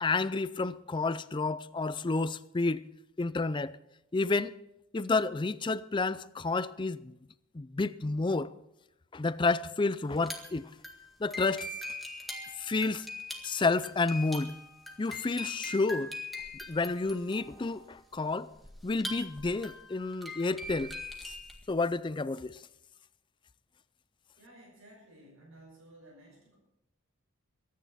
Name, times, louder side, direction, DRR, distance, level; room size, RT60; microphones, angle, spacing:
voice 1, 0.0-2.8 3.2-3.7 4.1-4.5 4.9-7.1 7.5-8.5 9.1-10.7 11.2-11.7 12.6-13.1 13.4-14.5 15.0-16.2 16.7-18.5 18.8-20.9 21.7-22.6, left 3 dB, 20° left, 0.4 m, -30 dB
sound 1, 10.1-21.6, left 2 dB, ahead, 1.8 m, -42 dB
voice 2, 24.4-26.6, right 1 dB, 75° right, 6.0 m, -55 dB
24.0 x 10.0 x 4.2 m
head